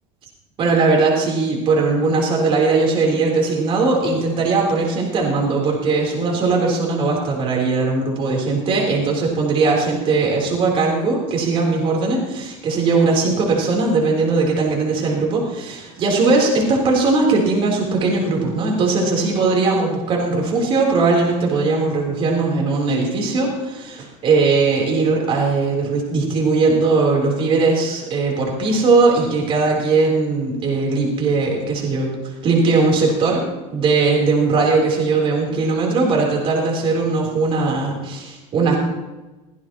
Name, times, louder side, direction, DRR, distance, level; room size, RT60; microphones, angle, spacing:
voice 1, 0.6-33.4 33.7-38.8, right 3 dB, 35° right, -1 dB, 3.7 m, -19 dB
17.0 x 14.5 x 3.0 m, 1.1 s
cardioid pair, 165°, 16 cm